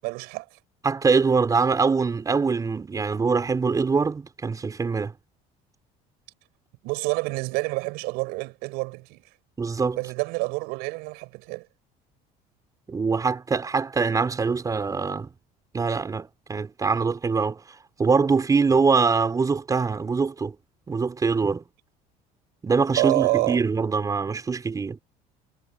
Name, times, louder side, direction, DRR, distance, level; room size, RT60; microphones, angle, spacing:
voice 1, 0.0-0.5 6.8-9.2 10.0-11.7 23.0-23.6, right 25 dB, 85° right, 7.1 m, -27 dB
voice 2, 0.8-5.1 9.6-10.0 12.9-15.3 15.7-17.6 18.0-20.6 20.9-21.6 22.6-25.0, right 4 dB, 20° right, 6.0 m, -23 dB
cardioid pair, 140°, 16 cm